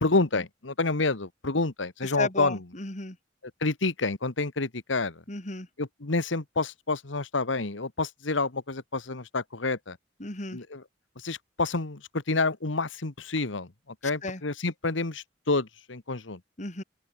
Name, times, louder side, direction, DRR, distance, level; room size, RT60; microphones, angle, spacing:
voice 1, 0.0-2.6 3.6-5.2 5.8-10.0 10.5-10.8 11.2-12.0 12.3-13.7 14.0-16.4, left 3 dB, 85° left, 1.5 m, -28 dB
voice 2, 2.0-3.2 5.3-5.7 10.2-10.6 14.2-14.4 16.6-16.8, left 2 dB, 40° left, 3.1 m, -34 dB
open air
head